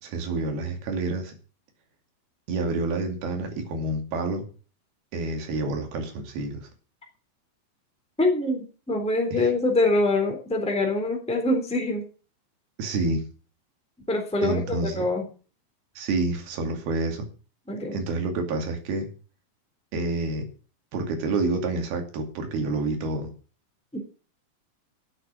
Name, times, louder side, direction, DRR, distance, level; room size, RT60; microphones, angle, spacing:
voice 1, 0.0-1.3 2.5-4.4 5.1-6.7 9.3-9.5 12.8-13.3 14.4-15.0 16.0-17.3 17.9-19.1 19.9-20.5 20.9-23.3, right 3 dB, 75° right, 4 dB, 4.3 m, -28 dB
voice 2, 8.2-12.0 14.1-15.3 17.7-18.0 23.9-24.0, left 2 dB, ahead, 1 dB, 3.2 m, -24 dB
11.5 x 7.9 x 7.5 m, 0.38 s
omnidirectional pair, 4.4 m